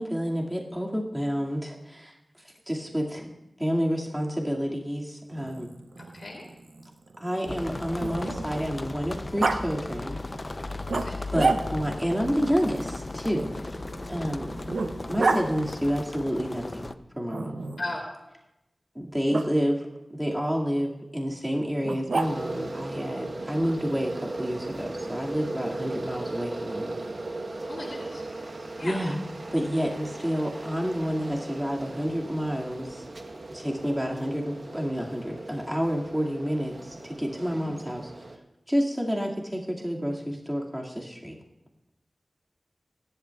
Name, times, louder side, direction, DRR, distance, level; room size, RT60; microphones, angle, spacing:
voice 1, 0.0-2.1 2.7-3.3 3.6-5.7 7.2-10.2 11.3-13.5 14.1-14.5 15.1-17.5 19.0-19.8 20.1-27.0 28.8-29.2 29.5-33.1 33.5-38.1 38.7-41.3, equal, 10° right, -2 dB, 2.1 m, -29 dB
Growling, 5.3-8.7 9.4-9.6 10.9-12.0 13.3-15.4 17.3-18.0 19.3-19.5 21.8-22.7, right 3 dB, 85° right, 0.7 m, -30 dB
voice 2, 6.0-6.4 10.9-11.2 17.8-18.0 27.7-28.2 28.8-29.0 37.5-37.8, left 2 dB, 65° left, -2 dB, 2.7 m, -37 dB
sound 1, 7.5-16.9, left 2 dB, 35° left, 0.5 m, -36 dB
sound 2, 22.2-38.4, right 2 dB, 60° right, 1.1 m, -37 dB
23.0 x 11.0 x 2.3 m, 0.93 s
wide cardioid pair, 60°, 0 cm